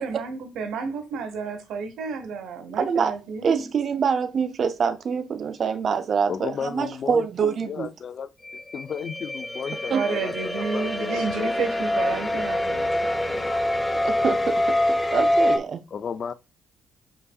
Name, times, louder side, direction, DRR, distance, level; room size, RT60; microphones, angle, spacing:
voice 1, 0.0-3.7 9.9-13.7, right 5 dB, 70° right, 0.9 m, -31 dB
voice 2, 2.8-3.1 3.4-7.9 9.9-10.0 14.0-15.8, right 6 dB, 55° right, 0.5 m, -25 dB
voice 3, 6.3-8.3 8.7-11.5 15.9-16.3, left 7 dB, 55° left, 0.4 m, -34 dB
sound 1, 8.5-15.6, left 1 dB, 10° left, 0.8 m, -25 dB
5.4 x 4.0 x 2.4 m
hypercardioid pair, 45°, 0 cm